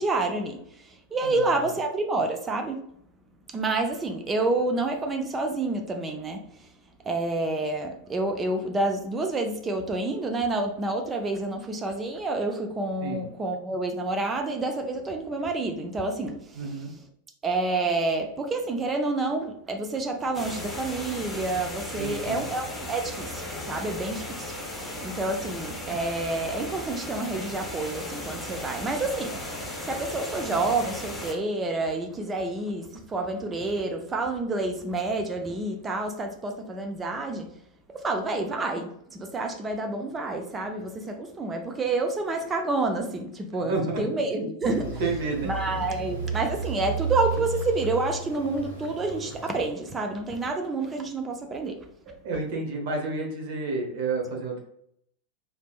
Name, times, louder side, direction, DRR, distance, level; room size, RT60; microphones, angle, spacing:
voice 1, 0.0-2.8 3.5-6.7 7.0-17.1 17.4-23.4 23.7-29.4 29.8-37.5 37.9-44.9 45.4-51.9, right 2 dB, 20° right, 4 dB, 0.5 m, -29 dB
voice 2, 16.5-16.9 22.0-22.4 43.6-44.5 45.0-45.5 52.2-54.6, right 3 dB, 50° right, 1 dB, 1.1 m, -30 dB
sound 1, 20.3-31.3, left 1 dB, 5° left, 0.9 m, -36 dB
sound 2, 44.6-49.7, right 4 dB, 70° right, 1.1 m, -33 dB
4.0 x 3.4 x 2.4 m, 0.71 s
figure-of-eight pair, 90°, 0 cm